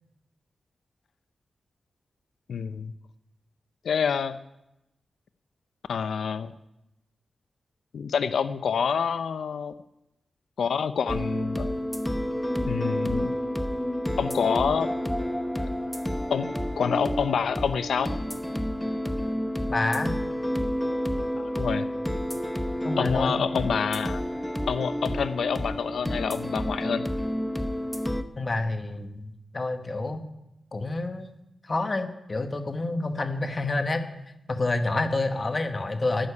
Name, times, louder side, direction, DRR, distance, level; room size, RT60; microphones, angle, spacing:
voice 1, 2.5-2.9 3.8-4.4 5.9-6.5 7.9-9.7 10.6-11.8 12.6-13.3 14.2-14.9 16.3-18.1 21.4-21.9 23.0-24.2 24.7-27.1, left 6 dB, 85° left, 12 dB, 0.6 m, -27 dB
sound 1, 11.1-28.2, equal, 5° left, 0.7 m, -30 dB
voice 2, 19.7-20.1 22.8-23.4 28.4-30.2 30.7-31.3 31.6-34.1 34.5-36.3, left 2 dB, 25° left, 8 dB, 1.2 m, -28 dB
11.5 x 9.7 x 9.9 m, 0.89 s
wide cardioid pair, 180°, 0 cm